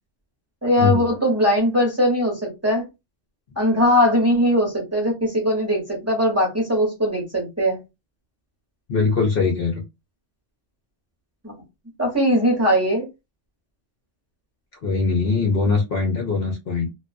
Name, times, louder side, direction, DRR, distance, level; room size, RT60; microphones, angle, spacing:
voice 1, 0.6-2.8 3.6-7.8 11.4-11.5 12.0-13.1, equal, 15° right, -2 dB, 1.0 m, -20 dB
voice 2, 8.9-9.8 14.8-16.9, left 4 dB, 60° left, 1 dB, 0.8 m, -21 dB
2.3 x 2.3 x 2.3 m, 0.23 s
omnidirectional pair, 1.2 m